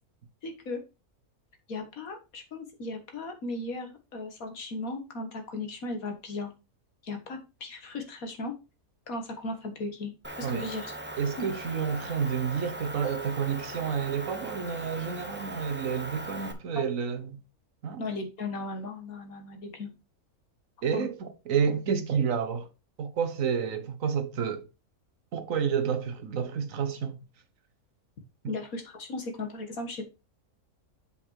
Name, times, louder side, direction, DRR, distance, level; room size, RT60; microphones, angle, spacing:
voice 1, 0.4-0.8 1.7-6.5 7.0-8.5 9.1-10.1 10.4-10.9 16.8-16.9 18.0-19.9 20.9-21.1 28.5-30.0, left 2 dB, 70° left, 2.0 m, -36 dB
Motor vehicle (road) / Engine, 10.2-16.5, right 1 dB, 10° right, 0.7 m, -40 dB
voice 2, 11.2-17.4 17.8-18.0 20.8-22.7 23.0-24.7 25.3-27.2 28.4-28.5, right 7 dB, 65° right, 1.4 m, -30 dB
7.1 x 5.4 x 4.6 m
omnidirectional pair, 1.6 m